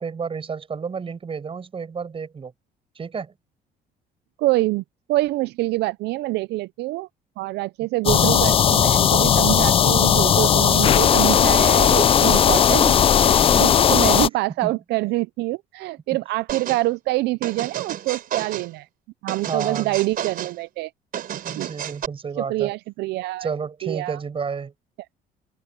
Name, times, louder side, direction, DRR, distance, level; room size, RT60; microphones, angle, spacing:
voice 1, 0.0-2.5 2.9-3.3 12.5-12.6 13.5-13.8 14.6-14.7 19.5-20.0 21.4-22.7 23.4-24.7, right 5 dB, 35° right, 6.7 m, -31 dB
voice 2, 4.4-4.8 5.1-7.1 7.4-12.9 13.2-18.9 19.2-20.9 21.6-21.7 22.4-23.5 23.8-24.2, right 19 dB, 80° right, 0.5 m, -25 dB
sound 1, 8.0-14.3, left 9 dB, 35° left, 0.4 m, -17 dB
sound 2, 16.5-16.8 17.4-18.7 19.3-20.5 21.1-22.1, right 10 dB, 60° right, 4.8 m, -31 dB
cardioid pair, 110°, 17 cm